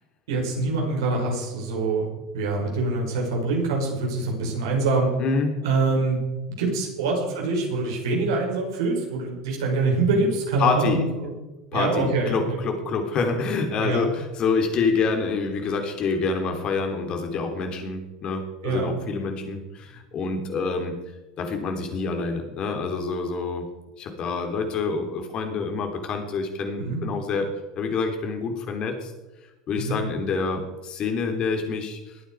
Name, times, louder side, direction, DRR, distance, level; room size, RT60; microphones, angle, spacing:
voice 1, 0.3-2.1 2.3-5.1 5.6-6.2 6.5-11.3 11.7-12.6 13.8-14.1 18.6-18.9 26.8-27.0 29.8-30.0, right 3 dB, 75° right, -1 dB, 5.4 m, -25 dB
voice 2, 5.2-5.6 10.6-11.1 11.7-21.0 21.4-23.7 24.0-27.5 27.8-29.1 29.7-32.2, left 4 dB, 45° left, 4 dB, 3.4 m, -27 dB
21.0 x 9.3 x 4.8 m, 1.1 s
hypercardioid pair, 80°, 2 cm